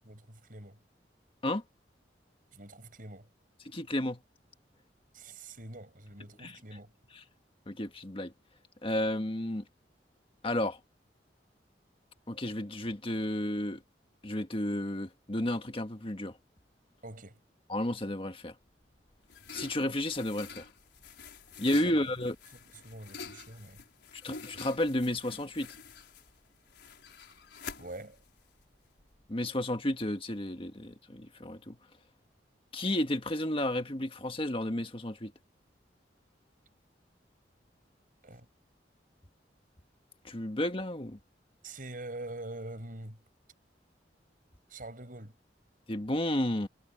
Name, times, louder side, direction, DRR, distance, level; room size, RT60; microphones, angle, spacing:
voice 1, 0.1-0.8 2.5-3.3 5.1-6.9 17.0-17.4 21.9-22.1 22.8-23.8 27.8-28.2 38.2-38.5 41.6-43.2 44.7-45.4, right 2 dB, 50° right, 7.7 m, -44 dB
voice 2, 3.6-4.2 6.4-6.6 7.1-7.2 7.7-8.3 8.8-9.6 10.4-10.8 12.3-13.8 14.2-16.4 17.7-18.5 19.5-20.7 21.6-22.3 24.2-25.8 29.3-31.8 32.7-35.3 40.2-41.2 45.9-46.7, left 1 dB, 30° left, 1.7 m, -32 dB
sound 1, 18.7-29.3, left 4 dB, 85° left, 4.8 m, -48 dB
head